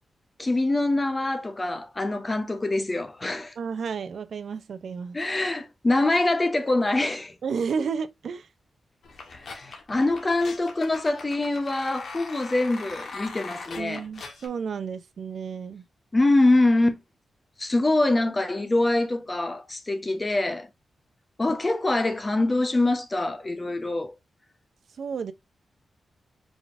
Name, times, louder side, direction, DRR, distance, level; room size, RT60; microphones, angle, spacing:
voice 1, 0.4-3.5 5.1-7.3 9.3-14.0 16.1-17.0 17.6-20.7 21.4-24.1, left 2 dB, 20° left, 0.8 m, -24 dB
voice 2, 3.6-5.2 7.4-8.5 13.8-15.8 25.0-25.3, right 6 dB, 70° right, 0.5 m, -32 dB
sound 1, 9.0-14.5, left 4 dB, 65° left, 1.3 m, -41 dB
4.9 x 3.9 x 2.5 m
wide cardioid pair, 135°, 0 cm